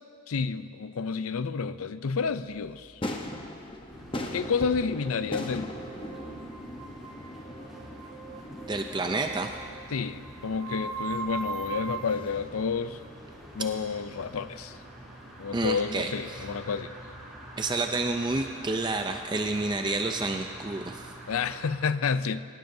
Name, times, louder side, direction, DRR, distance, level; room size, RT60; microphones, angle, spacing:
voice 1, 0.3-3.0 4.3-5.7 9.9-13.0 13.5-14.8 15.4-16.9 21.3-22.4, left 5 dB, 85° left, 13 dB, 0.5 m, -30 dB
sound 1, 2.2-14.3 14.7-14.8, left 1 dB, 25° left, 0.9 m, -41 dB
sound 2, 3.9-21.7, right 1 dB, ahead, 3.0 m, -46 dB
sound 3, 4.1-12.3, right 5 dB, 85° right, 1.7 m, -41 dB
voice 2, 8.7-9.5 15.5-16.4 17.6-21.1, right 2 dB, 20° right, 5 dB, 0.5 m, -29 dB
19.5 x 18.0 x 2.7 m, 2.2 s
head